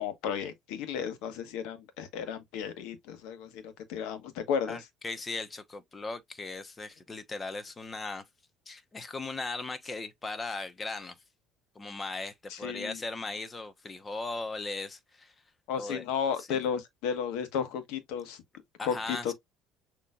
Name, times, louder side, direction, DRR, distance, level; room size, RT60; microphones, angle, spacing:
voice 1, 0.0-4.8 12.5-13.0 15.7-18.4 18.8-19.3, left 7 dB, 75° left, 1.3 m, -33 dB
voice 2, 4.7-8.2 8.7-11.2 11.7-15.3 15.8-16.0 16.4-16.6 18.8-19.3, left 3 dB, 20° left, 1.0 m, -38 dB
6.6 x 3.1 x 2.4 m
cardioid pair, 110°, 0 cm